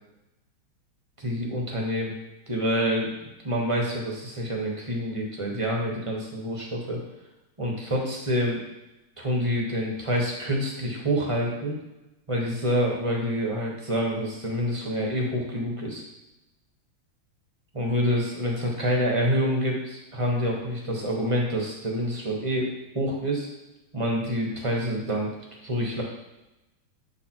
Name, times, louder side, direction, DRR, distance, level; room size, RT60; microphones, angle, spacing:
voice 1, 1.2-2.1 2.5-3.1 3.4-7.0 7.6-8.6 9.2-11.8 12.3-16.0 17.7-22.7 22.9-23.5 23.9-25.3 25.6-26.0, equal, 25° right, -2 dB, 0.7 m, -27 dB
7.8 x 4.1 x 4.4 m, 0.98 s
omnidirectional pair, 2.3 m